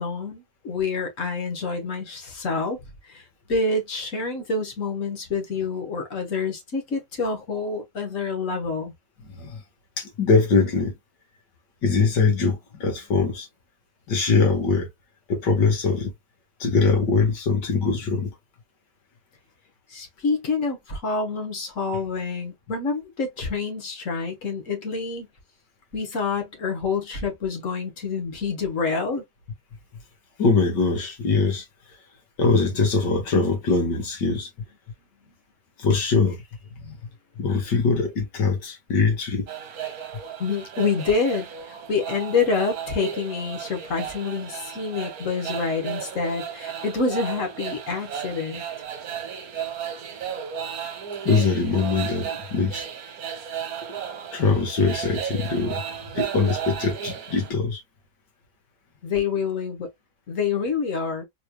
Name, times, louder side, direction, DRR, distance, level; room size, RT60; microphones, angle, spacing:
voice 1, 0.0-2.8 3.0-8.9 19.9-25.3 25.9-29.2 40.4-48.6 59.0-59.9 60.3-61.2, left 4 dB, 50° left, 1.6 m, -27 dB
voice 2, 9.3-9.6 10.0-10.9 11.8-13.5 14.1-14.9 15.3-16.1 16.6-18.3 30.4-31.6 32.4-34.5 35.8-36.4 36.8-37.0 37.4-39.5 51.3-52.8 54.3-55.8 56.1-57.8, left 4 dB, 80° left, 2.1 m, -22 dB
sound 1, 39.5-57.5, right 8 dB, 65° right, 1.3 m, -34 dB
4.2 x 3.2 x 2.2 m
omnidirectional pair, 1.8 m